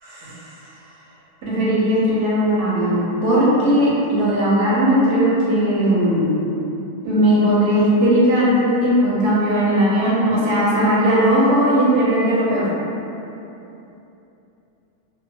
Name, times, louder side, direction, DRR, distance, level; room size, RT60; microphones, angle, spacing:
voice 1, 0.0-0.5 1.4-6.3 7.0-12.7, equal, 65° right, -8 dB, 0.8 m, -18 dB
2.7 x 2.1 x 2.6 m, 2.9 s
omnidirectional pair, 1.7 m